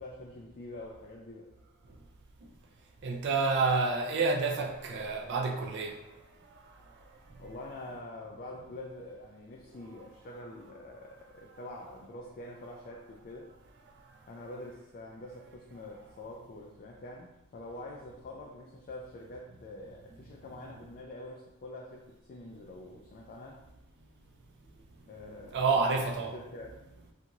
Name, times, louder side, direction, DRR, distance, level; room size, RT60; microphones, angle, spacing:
voice 1, 0.0-1.5 7.4-13.5 14.3-23.6 25.1-25.8 26.3-26.7, left 1 dB, 40° left, 0.3 m, -45 dB
voice 2, 3.0-6.0 6.5-6.6 6.9-7.0 25.5-26.3, right 4 dB, 50° right, 0.4 m, -29 dB
2.6 x 2.4 x 2.9 m
head